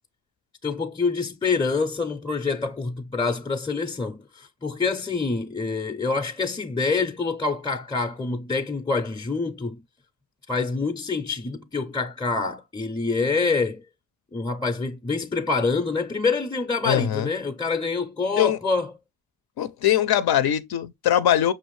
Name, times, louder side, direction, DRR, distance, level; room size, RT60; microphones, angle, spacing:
voice 1, 0.6-9.8 10.5-13.8 14.3-18.9, left 4 dB, 10° left, 0.4 m, -26 dB
voice 2, 16.8-17.3 18.4-18.6 19.6-21.5, left 11 dB, 85° left, 0.5 m, -21 dB
5.5 x 2.5 x 3.0 m
cardioid pair, 70°, 37 cm